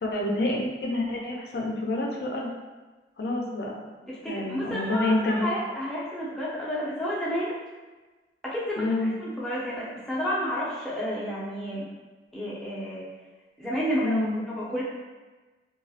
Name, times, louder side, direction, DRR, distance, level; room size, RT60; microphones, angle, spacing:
voice 1, 0.0-2.5 3.2-3.8 4.3-5.5 8.8-9.1 14.0-14.4, left 2 dB, 65° left, -1 dB, 0.4 m, -27 dB
voice 2, 4.1-7.6 8.4-8.8 9.2-11.9 12.3-13.0 13.6-14.2 14.5-14.8, equal, ahead, -8 dB, 0.5 m, -30 dB
2.2 x 2.0 x 2.7 m, 1.3 s
head